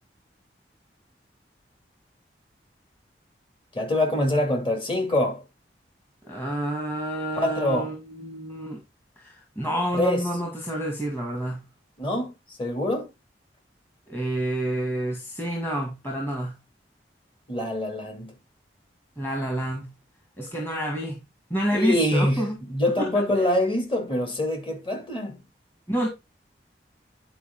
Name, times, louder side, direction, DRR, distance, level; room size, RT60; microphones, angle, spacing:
voice 1, 3.7-5.4 7.3-7.9 9.9-10.2 12.0-13.1 17.5-18.3 21.7-25.4, left 1 dB, 30° left, 2.8 m, -25 dB
voice 2, 6.2-8.8 9.2-11.7 14.1-16.6 19.2-19.9 20.4-21.2 21.5-22.6 23.0-23.1 25.9-26.1, right 1 dB, 15° left, 1.8 m, -28 dB
10.0 x 4.8 x 3.8 m
head